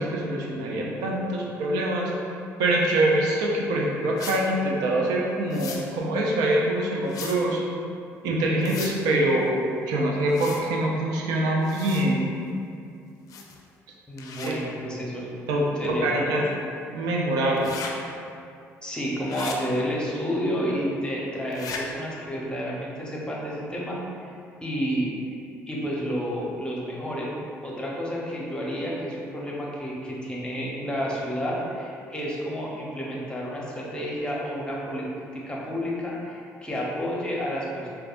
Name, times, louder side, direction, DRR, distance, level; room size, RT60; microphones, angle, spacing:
voice 1, 0.0-2.1 2.6-7.6 8.2-9.5 9.8-12.3 14.4-14.6 15.5-16.4 16.9-18.0, right 1 dB, 80° right, -2 dB, 0.5 m, -24 dB
sound 1, 4.2-4.4 5.5-5.8 7.1-7.4 8.6-9.0 10.3-10.6 11.6-12.1 13.3-13.6 14.2-14.5 17.6-17.9 19.3-19.6 21.5-21.8, left 5 dB, 60° left, 0.4 m, -37 dB
voice 2, 14.1-15.3 15.8-16.4 18.8-24.3 24.6-25.4 25.7-27.3 27.6-37.9, equal, 15° left, -4 dB, 0.9 m, -30 dB
4.5 x 2.3 x 2.5 m, 2.4 s
supercardioid pair, 65°, 7 cm